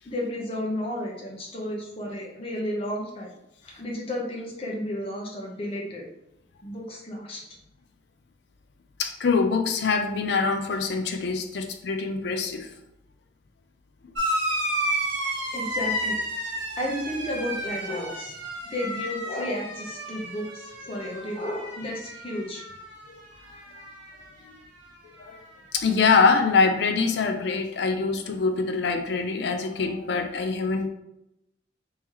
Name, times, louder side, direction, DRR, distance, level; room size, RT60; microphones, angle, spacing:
voice 1, 0.0-3.3 3.6-6.0 6.6-7.4 15.5-16.2 16.8-18.3 18.6-22.6, left 1 dB, 30° left, -1 dB, 0.8 m, -32 dB
voice 2, 9.0-12.7 20.9-21.1 23.1-23.2 24.5-24.6 25.2-25.4 25.7-30.9, left 4 dB, 65° left, 6 dB, 0.4 m, -24 dB
sound 1, 14.1-23.2 23.4-24.2 25.3-25.4, right 1 dB, 80° right, 1.0 m, -32 dB
3.7 x 2.9 x 3.0 m, 0.85 s
head